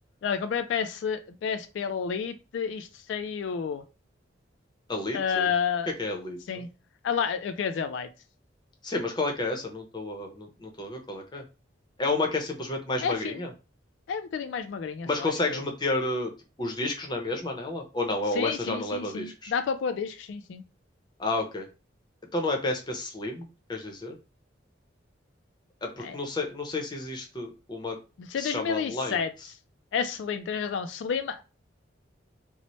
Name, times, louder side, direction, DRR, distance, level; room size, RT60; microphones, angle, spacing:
voice 1, 0.2-3.8 5.1-5.9 6.5-6.7 7.0-8.1 13.0-13.4 14.1-15.6 18.3-20.6 26.0-26.2 28.2-29.3 29.9-31.4, left 6 dB, 75° left, 9 dB, 0.3 m, -30 dB
voice 2, 4.9-5.5 6.0-6.6 8.8-11.4 12.0-13.5 15.1-16.3 16.6-19.5 21.2-21.7 22.3-23.4 23.7-24.2 25.8-28.0 28.4-29.2, left 2 dB, 25° left, 2 dB, 0.6 m, -31 dB
3.0 x 2.0 x 4.1 m, 0.31 s
head